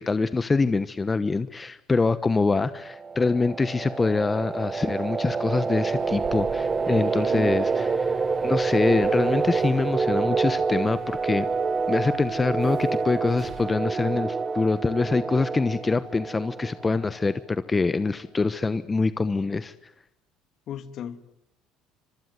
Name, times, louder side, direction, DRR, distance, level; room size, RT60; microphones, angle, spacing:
voice 1, 0.0-11.5 11.9-19.9, left 3 dB, 20° left, 1.1 m, -25 dB
sound 1, 2.7-17.2, right 4 dB, 25° right, 1.0 m, -27 dB
Human voice / Subway metro underground, 5.8-13.8, right 7 dB, 50° right, 4.7 m, -42 dB
voice 2, 7.3-7.8 20.7-21.3, left 9 dB, 55° left, 2.6 m, -37 dB
25.5 x 24.0 x 9.4 m
supercardioid pair, 90°, 0 cm